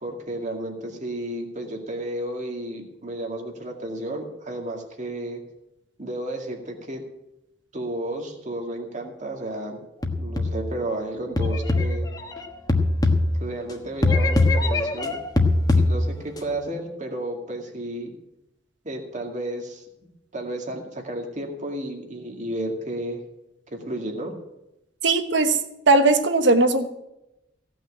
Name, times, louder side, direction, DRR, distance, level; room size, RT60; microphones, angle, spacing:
voice 1, 0.0-5.4 6.0-7.0 7.7-9.8 10.2-12.1 13.4-15.2 15.7-18.1 18.8-19.8 20.3-23.2 23.7-24.3, right 1 dB, 40° right, 2 dB, 2.2 m, -32 dB
sound 1, 10.0-10.8 11.4-13.7 14.0-16.4, left 2 dB, 20° left, 1.3 m, -22 dB
voice 2, 25.0-25.6 25.9-26.9, right 3 dB, 70° right, 8 dB, 1.2 m, -18 dB
16.0 x 6.2 x 8.8 m, 0.90 s
head